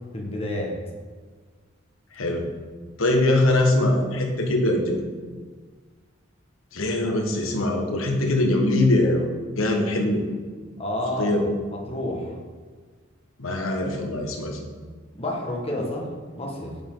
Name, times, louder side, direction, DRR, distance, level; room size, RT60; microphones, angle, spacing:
voice 1, 0.1-0.7 10.8-11.4 11.7-12.4 15.2-16.1 16.3-16.7, left 1 dB, 30° left, -1 dB, 1.7 m, -29 dB
voice 2, 2.1-2.4 3.0-5.0 6.7-9.3 9.6-10.2 11.2-11.5 13.4-14.6, left 1 dB, 80° left, 2 dB, 1.5 m, -22 dB
9.3 x 7.5 x 3.9 m, 1.5 s
head